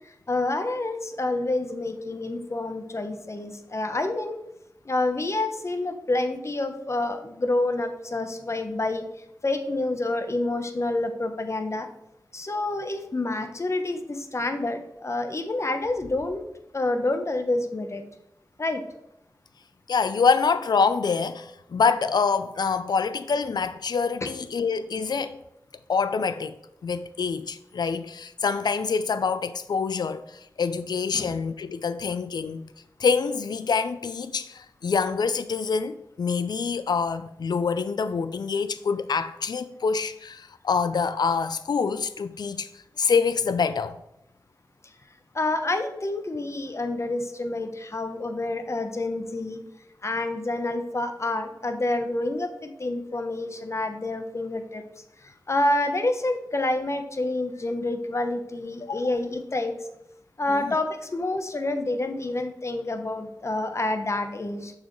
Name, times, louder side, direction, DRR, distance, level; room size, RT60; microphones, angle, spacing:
voice 1, 0.3-4.4 4.8-9.0 9.4-11.9 12.3-16.4 16.7-18.0 18.6-18.8 31.1-31.4 45.3-49.6 50.0-54.8 55.5-59.7 60.4-64.7, left 2 dB, 45° left, 0.9 m, -28 dB
voice 2, 19.9-25.4 25.9-26.6 26.8-32.6 33.0-42.7 43.0-44.0 58.8-59.1 60.5-60.8, left 5 dB, 90° left, 0.4 m, -26 dB
6.9 x 6.5 x 3.1 m
wide cardioid pair, 70°, 7 cm